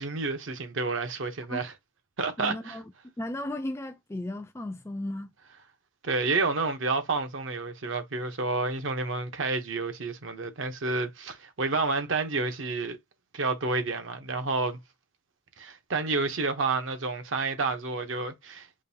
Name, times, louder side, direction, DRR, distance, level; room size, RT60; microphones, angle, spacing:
voice 1, 0.0-1.7 2.2-2.7 6.0-13.0 13.3-14.8 15.6-18.7, right 3 dB, 65° right, 0.8 m, -29 dB
voice 2, 2.4-5.3, left 1 dB, 15° left, 0.3 m, -35 dB
5.2 x 2.4 x 2.7 m
head